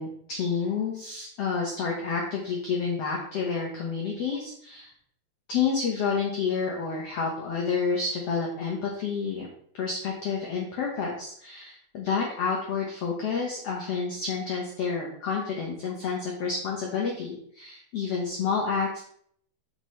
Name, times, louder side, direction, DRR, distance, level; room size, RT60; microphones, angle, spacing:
voice 1, 0.0-4.9 5.5-9.5 9.7-19.0, left 5 dB, 85° left, -2 dB, 1.3 m, -29 dB
6.8 x 5.9 x 3.1 m, 0.65 s
omnidirectional pair, 4.3 m